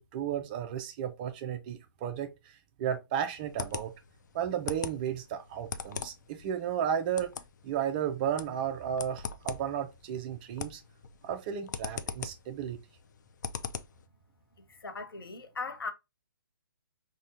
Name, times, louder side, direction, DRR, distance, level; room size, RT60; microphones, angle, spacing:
voice 1, 0.0-3.9 4.3-7.3 7.6-10.8 11.2-12.8, right 9 dB, 25° right, 0.4 m, -33 dB
sound 1, 3.3-14.0, left 6 dB, 55° left, 0.4 m, -42 dB
voice 2, 14.7-15.9, left 4 dB, 80° left, 0.7 m, -38 dB
3.6 x 2.2 x 2.6 m
hypercardioid pair, 145°, 12 cm